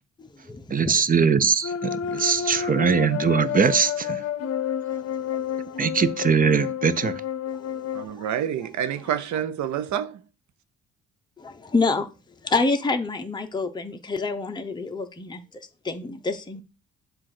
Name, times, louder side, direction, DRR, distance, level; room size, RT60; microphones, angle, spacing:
voice 1, 0.2-1.0 2.0-2.7 5.2-5.9 7.5-8.3 11.4-12.1 12.4-16.6, left 3 dB, 15° left, 0.8 m, -29 dB
voice 2, 0.7-1.7 2.1-4.2 5.8-7.1, right 6 dB, 30° right, 0.6 m, -21 dB
sound 1, 1.6-8.1, left 8 dB, 55° left, 0.7 m, -30 dB
voice 3, 7.9-10.2, right 9 dB, 70° right, 0.7 m, -28 dB
7.6 x 2.6 x 5.9 m
cardioid pair, 90°, 30 cm